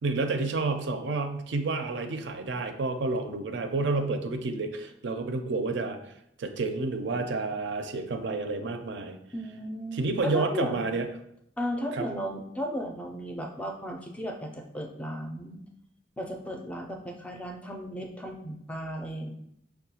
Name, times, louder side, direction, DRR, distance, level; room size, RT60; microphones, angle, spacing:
voice 1, 0.0-6.1 6.4-9.2 9.9-11.1 11.9-12.1, right 3 dB, 80° right, 7 dB, 0.4 m, -30 dB
voice 2, 9.3-10.9 11.6-15.6 16.2-19.3, equal, 5° left, 2 dB, 0.4 m, -35 dB
5.4 x 2.2 x 2.8 m, 0.75 s
head